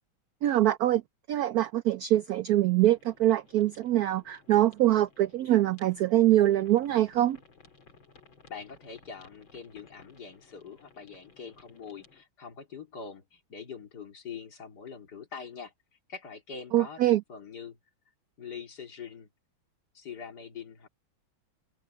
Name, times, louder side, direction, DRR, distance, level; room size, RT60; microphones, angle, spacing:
voice 1, 0.4-1.0 1.3-7.4 16.7-17.2, right 14 dB, 90° right, 0.8 m, -24 dB
sound 1, 2.9-12.2, left 4 dB, 75° left, 4.5 m, -59 dB
voice 2, 8.5-15.7 16.1-17.8 18.4-19.3 19.9-20.9, left 6 dB, 50° left, 3.3 m, -44 dB
open air
omnidirectional pair, 2.2 m